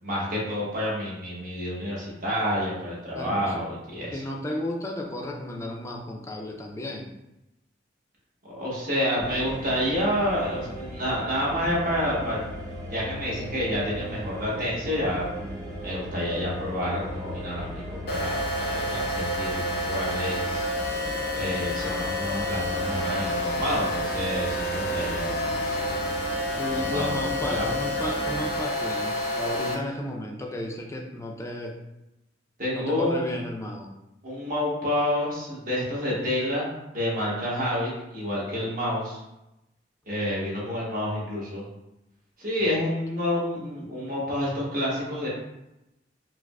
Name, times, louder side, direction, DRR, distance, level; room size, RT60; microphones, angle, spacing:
voice 1, 0.0-4.2 8.4-12.4 12.9-20.6 21.3-25.5 26.7-27.7 32.6-33.3 34.2-39.2 40.1-41.6 42.4-45.3, left 1 dB, 50° right, -5 dB, 1.1 m, -29 dB
voice 2, 3.1-3.6 4.1-7.1 26.6-31.8 32.7-34.0 42.6-42.8, left 1 dB, 15° left, 1 dB, 0.4 m, -33 dB
sound 1, 9.2-28.6, equal, 15° right, 0.8 m, -37 dB
sound 2, 18.1-29.7, left 1 dB, 60° left, 0.6 m, -29 dB
4.6 x 2.0 x 2.3 m, 0.92 s
head